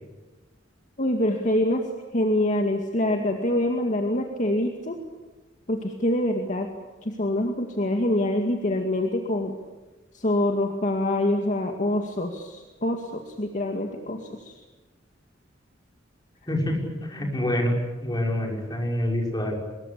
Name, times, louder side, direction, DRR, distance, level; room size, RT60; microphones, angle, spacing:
voice 1, 1.0-1.9 2.1-5.0 5.7-6.7 7.0-9.5 10.1-14.6, left 1 dB, 40° left, 4 dB, 2.2 m, -25 dB
voice 2, 16.5-17.8 18.0-19.6, left 1 dB, 20° left, 1 dB, 5.8 m, -26 dB
25.0 x 22.0 x 8.6 m, 1.2 s
head